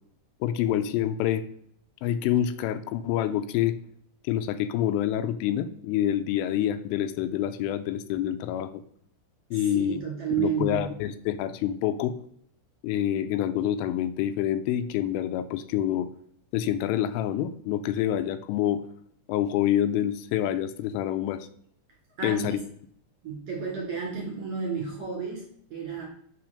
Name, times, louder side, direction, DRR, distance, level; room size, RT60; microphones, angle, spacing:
voice 1, 0.4-1.4 2.0-3.8 4.2-8.8 9.5-10.0 10.4-12.2 12.8-16.1 16.5-18.8 19.3-21.5 22.2-22.6, left 11 dB, 85° left, 10 dB, 3.2 m, -27 dB
voice 2, 9.5-10.8 22.2-22.6 23.2-25.4 25.7-26.0, right 6 dB, 35° right, -3 dB, 3.9 m, -31 dB
7.0 x 6.0 x 6.5 m, 0.65 s
omnidirectional pair, 5.7 m